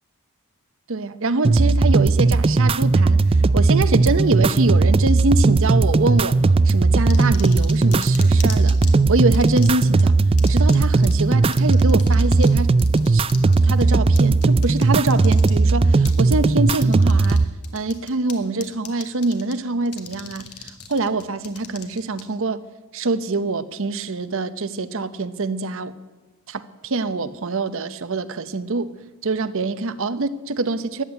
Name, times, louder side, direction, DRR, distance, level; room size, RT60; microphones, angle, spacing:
voice 1, 0.9-6.4 6.6-8.8 9.1-10.1 10.5-12.8 13.1-13.2 13.6-17.5 17.7-22.6 22.9-25.9 26.5-28.9 29.2-31.0, right 3 dB, 60° right, 0.8 m, -24 dB
sound 1, 1.4-17.5, right 3 dB, 25° right, 0.4 m, -17 dB
sound 2, 7.1-8.9 9.3-10.0 10.4-10.8 11.0-11.1 11.5-12.5 12.8-15.5 16.0-16.2 16.7-17.4 17.6-18.3 18.6-19.5 19.9-22.2, left 9 dB, 85° left, 1.7 m, -37 dB
13.5 x 9.0 x 9.3 m
head